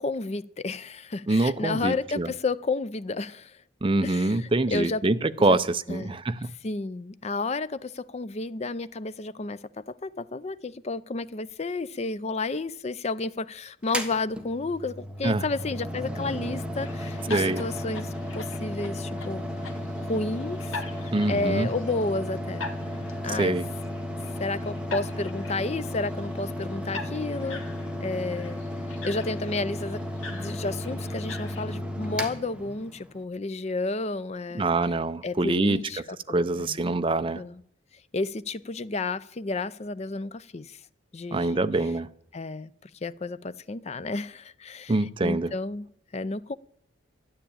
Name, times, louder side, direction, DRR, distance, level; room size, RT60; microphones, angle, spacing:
voice 1, 0.0-3.6 4.0-5.0 5.4-5.6 5.9-6.2 6.6-19.4 20.1-22.7 23.2-23.6 24.4-27.6 28.0-28.6 29.0-30.0 30.3-34.7 35.2-36.8 37.4-37.6 38.1-40.8 41.1-41.7 42.3-45.9 46.1-46.5, left 3 dB, 30° left, 0.5 m, -31 dB
voice 2, 1.3-2.3 3.8-6.5 15.2-15.4 17.3-17.6 21.1-21.7 23.3-23.7 34.5-35.8 36.3-37.4 41.3-42.1 44.9-45.5, right 2 dB, 25° right, 0.5 m, -25 dB
Mechanical fan, 13.8-33.2, left 1 dB, 5° right, 1.2 m, -34 dB
sound 1, 16.8-31.6, left 4 dB, 85° left, 1.7 m, -43 dB
12.5 x 10.0 x 8.7 m
head